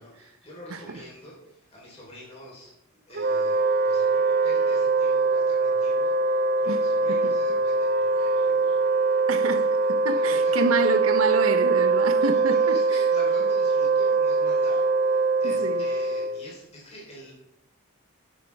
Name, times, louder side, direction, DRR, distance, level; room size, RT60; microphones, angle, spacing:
voice 1, 0.0-2.8 3.0-8.8 10.1-10.7 11.9-17.3, equal, 30° left, 4.1 m, -45 dB
Wind instrument woodwind instrument, 3.1-16.5, right 3 dB, 45° right, 0.4 m, -23 dB
voice 2, 9.3-12.8 15.4-15.8, right 3 dB, 80° right, 0.9 m, -28 dB
11.5 x 11.0 x 3.6 m
head